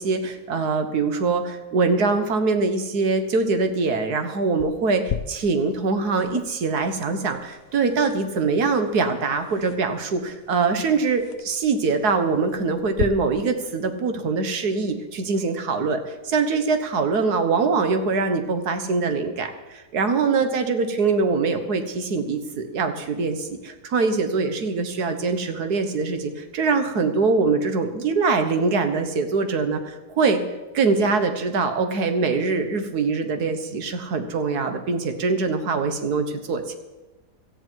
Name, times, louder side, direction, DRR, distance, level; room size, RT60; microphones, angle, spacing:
voice 1, 0.0-30.4 30.7-36.8, right 4 dB, 70° right, 7 dB, 1.8 m, -23 dB
sound 1, 4.6-13.0, left 10 dB, 60° left, 0.7 m, -37 dB
17.5 x 13.5 x 4.6 m, 1.1 s
omnidirectional pair, 1.8 m